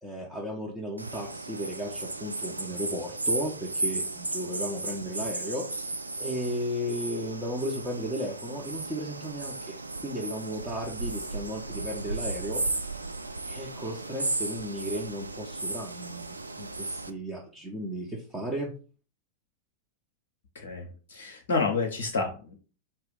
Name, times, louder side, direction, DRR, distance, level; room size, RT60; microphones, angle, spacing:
voice 1, 0.0-5.7 6.2-9.8 10.0-12.9 13.5-18.7, equal, 15° right, -2 dB, 0.8 m, -35 dB
sound 1, 1.0-17.1, right 2 dB, 80° right, 0.3 m, -35 dB
voice 2, 20.5-22.5, left 4 dB, 60° left, 2 dB, 0.6 m, -29 dB
4.0 x 2.5 x 3.8 m, 0.37 s
figure-of-eight pair, 90°, 0 cm